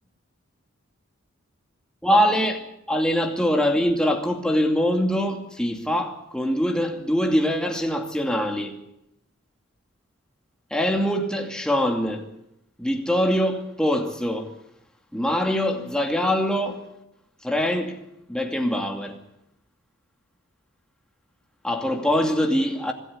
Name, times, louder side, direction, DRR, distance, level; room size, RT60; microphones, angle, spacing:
voice 1, 2.0-8.8 10.7-12.3 12.8-14.5 15.1-16.8 17.4-18.0 18.3-19.2 21.6-22.9, equal, 5° left, 2.5 m, -23 dB
25.5 x 13.0 x 9.8 m
head